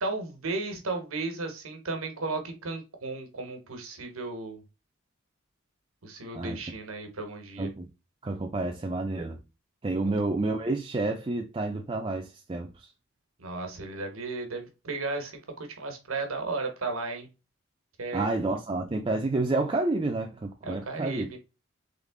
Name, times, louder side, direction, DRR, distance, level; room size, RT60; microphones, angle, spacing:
voice 1, 0.0-4.6 6.0-7.7 10.0-10.2 13.4-17.3 18.0-18.3 20.6-21.4, right 3 dB, 90° right, 1.3 m, -34 dB
voice 2, 8.2-9.4 9.8-12.9 18.1-21.3, right 2 dB, 25° right, 0.4 m, -29 dB
3.7 x 3.4 x 3.6 m
head